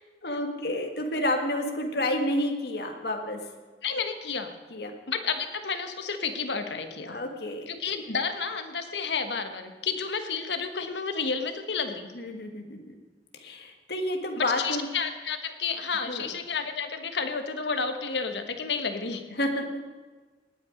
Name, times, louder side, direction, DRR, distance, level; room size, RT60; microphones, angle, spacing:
voice 1, 0.2-3.4 4.7-4.9 7.1-7.7 12.1-12.9 13.3-14.9 16.1-16.3 19.4-20.1, left 1 dB, 65° left, 4 dB, 1.6 m, -30 dB
voice 2, 3.8-4.5 5.1-7.2 7.7-12.1 14.4-19.2, left 5 dB, 80° left, 7 dB, 1.3 m, -31 dB
18.5 x 9.3 x 5.1 m, 1.4 s
head